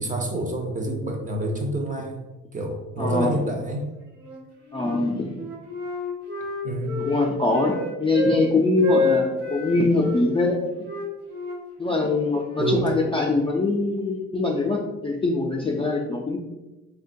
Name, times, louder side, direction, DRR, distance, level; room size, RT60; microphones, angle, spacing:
voice 1, 0.0-2.3 2.5-3.9 6.6-7.0 12.6-13.0, right 1 dB, 25° right, 2 dB, 0.6 m, -27 dB
voice 2, 3.0-3.3 4.7-5.3 7.0-10.6 11.8-16.4, left 2 dB, 20° left, -2 dB, 0.3 m, -23 dB
Wind instrument woodwind instrument, 4.2-5.0 5.3-8.4 8.8-10.3 10.8-13.3, left 3 dB, 55° right, 1.0 m, -29 dB
3.7 x 2.2 x 2.5 m, 1.1 s
cardioid pair, 90°, 30 cm